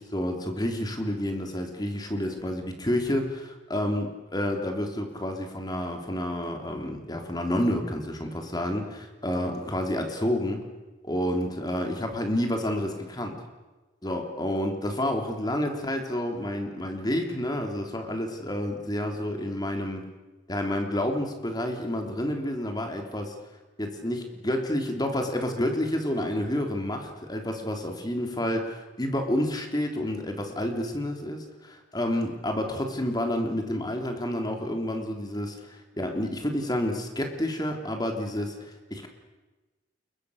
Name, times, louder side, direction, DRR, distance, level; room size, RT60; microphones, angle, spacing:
voice 1, 0.0-10.6 11.0-13.4 14.0-20.1 20.5-23.3 23.8-39.1, left 1 dB, 20° left, 4 dB, 3.6 m, -29 dB
30.0 x 22.5 x 6.7 m, 1.2 s
head